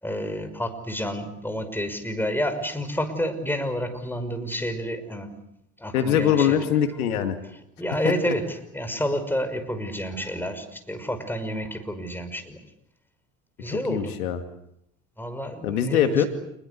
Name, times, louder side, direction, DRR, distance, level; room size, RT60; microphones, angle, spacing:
voice 1, 0.0-5.3 5.8-6.7 7.8-12.6 13.6-14.2 15.2-16.3, equal, 5° left, 8 dB, 5.8 m, -29 dB
voice 2, 5.9-7.4 13.7-14.4 15.6-16.3, left 9 dB, 80° left, 7 dB, 2.5 m, -22 dB
28.5 x 21.5 x 8.4 m, 0.76 s
hypercardioid pair, 70°, 43 cm